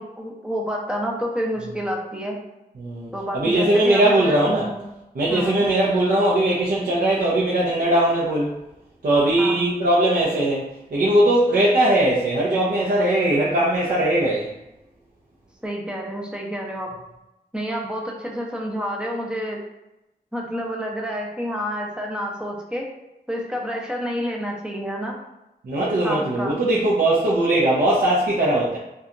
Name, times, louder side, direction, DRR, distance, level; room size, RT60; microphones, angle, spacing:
voice 1, 0.0-2.4 3.1-4.8 5.3-5.7 9.4-9.7 15.6-16.9 17.5-19.6 20.3-22.9 23.3-25.2 26.0-26.6, equal, 5° right, -1 dB, 0.5 m, -29 dB
voice 2, 2.8-4.7 5.1-8.5 9.0-10.6 10.9-14.5 25.6-28.8, right 1 dB, 60° right, -6 dB, 0.5 m, -20 dB
2.7 x 2.3 x 2.4 m, 0.93 s
wide cardioid pair, 85°, 17 cm